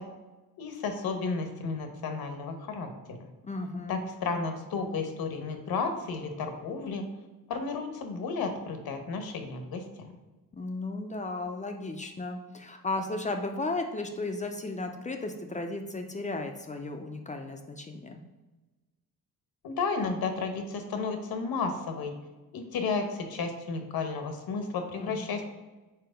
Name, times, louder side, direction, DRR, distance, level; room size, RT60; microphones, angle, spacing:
voice 1, 0.6-2.9 3.2-3.3 3.9-7.1 7.5-10.1 19.6-22.1 22.5-25.5, left 4 dB, 85° left, 5 dB, 1.0 m, -32 dB
voice 2, 3.4-4.1 10.5-18.2 25.0-25.4, left 2 dB, 20° left, 5 dB, 0.4 m, -35 dB
4.7 x 4.3 x 5.0 m, 1.2 s
wide cardioid pair, 165°, 35 cm